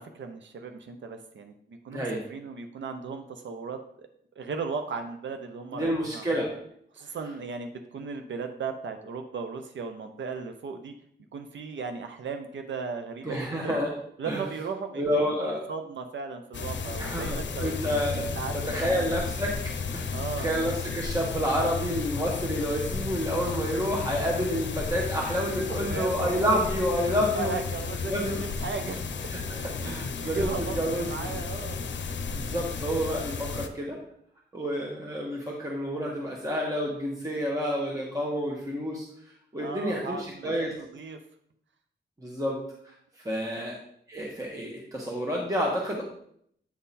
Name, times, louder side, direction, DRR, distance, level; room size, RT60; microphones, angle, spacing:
voice 1, 0.0-4.1 4.4-6.2 6.9-10.9 11.3-13.8 14.2-19.1 20.1-20.5 23.4-23.6 25.7-26.6 27.3-29.0 29.8-31.8 39.5-41.2 43.5-43.7, right 5 dB, 90° right, 6 dB, 0.6 m, -37 dB
voice 2, 5.7-6.5 13.2-13.9 14.3-14.4 14.9-15.7 17.0-27.5 28.1-28.4 29.3-31.3 32.3-34.0 34.5-39.1 39.5-40.7 42.2-42.6 42.8-43.8 44.1-46.0, equal, 20° right, -2 dB, 1.2 m, -29 dB
sound 1, 16.5-33.7, left 5 dB, 75° left, 0.6 m, -33 dB
8.4 x 3.7 x 4.1 m, 0.68 s
wide cardioid pair, 100°, 19 cm